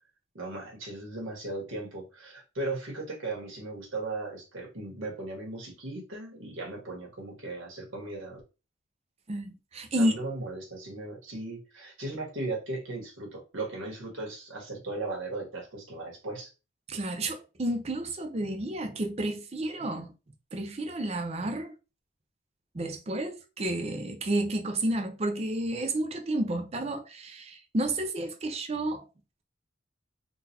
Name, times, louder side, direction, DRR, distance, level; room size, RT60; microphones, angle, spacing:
voice 1, 0.3-8.4 10.0-16.5, right 2 dB, 75° right, 1.5 m, -37 dB
voice 2, 9.3-10.2 16.9-20.1 20.5-21.7 22.7-29.1, right 1 dB, 30° right, 0.5 m, -31 dB
3.8 x 2.4 x 2.8 m
head